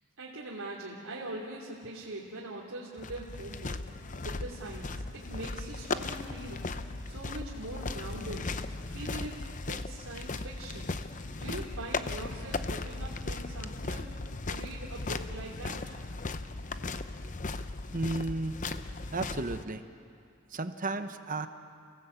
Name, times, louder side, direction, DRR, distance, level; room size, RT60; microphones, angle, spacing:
voice 1, 0.2-3.8 4.2-6.7 7.0-8.5 8.9-10.9 11.3-14.1 14.4-15.9, right 2 dB, 85° right, -5 dB, 3.0 m, -42 dB
sound 1, 3.0-19.6, left 3 dB, 35° left, 0.7 m, -37 dB
voice 2, 17.9-18.6 19.1-19.8 20.5-21.5, right 2 dB, 40° right, 9 dB, 0.9 m, -33 dB
30.0 x 17.0 x 8.2 m, 2.4 s
head